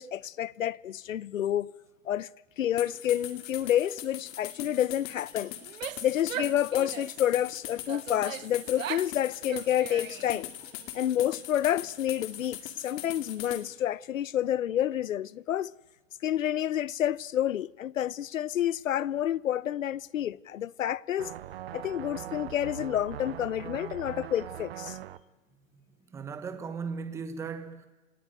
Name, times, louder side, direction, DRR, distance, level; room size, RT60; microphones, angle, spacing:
voice 1, 0.0-1.7 2.1-2.3 2.6-5.6 6.0-10.5 10.9-15.7 16.2-21.3 21.7-25.0, left 11 dB, 85° left, 0.9 m, -29 dB
sound 1, 2.8-13.6, left 12 dB, 25° left, 2.1 m, -41 dB
Female speech woman speaking / Yell, 5.6-7.3 7.9-9.2 9.4-10.4, right 11 dB, 80° right, 0.9 m, -39 dB
sound 2, 21.2-25.2, right 11 dB, 50° right, 1.1 m, -41 dB
voice 2, 26.1-27.9, right 5 dB, 5° right, 1.2 m, -37 dB
28.0 x 18.5 x 9.2 m
hypercardioid pair, 165°, 38 cm